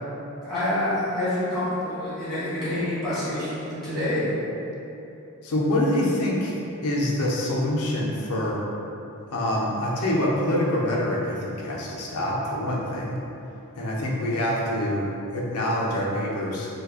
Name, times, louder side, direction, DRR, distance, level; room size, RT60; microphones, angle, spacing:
voice 1, 0.4-4.3, left 1 dB, ahead, -14 dB, 1.5 m, -27 dB
voice 2, 5.4-6.6 6.8-8.6 9.3-13.1 13.8-16.7, left 1 dB, 90° left, -4 dB, 0.5 m, -25 dB
3.2 x 2.2 x 3.5 m, 2.9 s
head